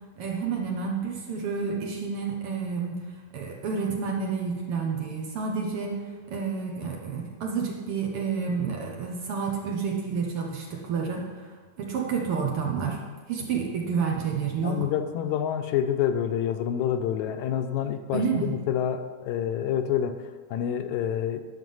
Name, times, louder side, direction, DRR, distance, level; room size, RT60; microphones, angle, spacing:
voice 1, 0.2-3.0 3.3-6.0 6.3-11.5 11.8-13.0 13.3-14.9 18.1-18.6, right 5 dB, 60° right, 0 dB, 1.7 m, -29 dB
voice 2, 14.6-20.2 20.5-21.5, left 9 dB, 85° left, 8 dB, 2.0 m, -27 dB
11.0 x 5.9 x 5.5 m, 1.4 s
omnidirectional pair, 3.3 m